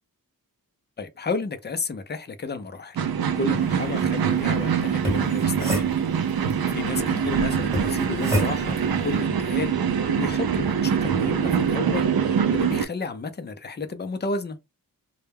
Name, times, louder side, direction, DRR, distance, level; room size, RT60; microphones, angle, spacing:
voice 1, 1.0-5.8 6.3-14.6, left 3 dB, 30° left, 0.4 m, -32 dB
sound 1, 3.0-12.9, right 7 dB, 80° right, 0.5 m, -24 dB
sound 2, 4.9-6.5 7.7-8.9, equal, 10° right, 1.1 m, -28 dB
sound 3, 6.9-11.4 11.8-11.9, left 3 dB, 80° left, 0.7 m, -39 dB
2.2 x 2.1 x 3.3 m
wide cardioid pair, 85°, 35 cm